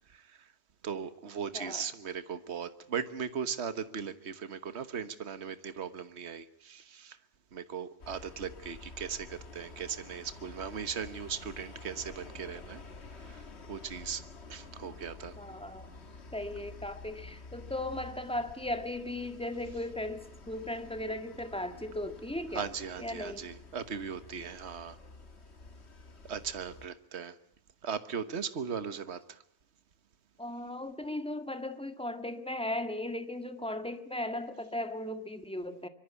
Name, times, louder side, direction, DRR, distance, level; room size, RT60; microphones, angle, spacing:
voice 1, 0.1-0.5 0.8-7.2 7.5-12.8 13.2-14.2 14.5-15.4 22.5-25.0 26.2-27.4 27.8-29.4, right 6 dB, 65° right, 1.5 m, -38 dB
voice 2, 1.5-1.9 15.4-15.9 16.3-22.7 23.0-23.5 30.4-35.9, left 1 dB, 5° left, 1.7 m, -37 dB
sound 1, 8.0-26.9, left 3 dB, 65° left, 2.0 m, -50 dB
24.5 x 22.5 x 8.3 m
omnidirectional pair, 1.2 m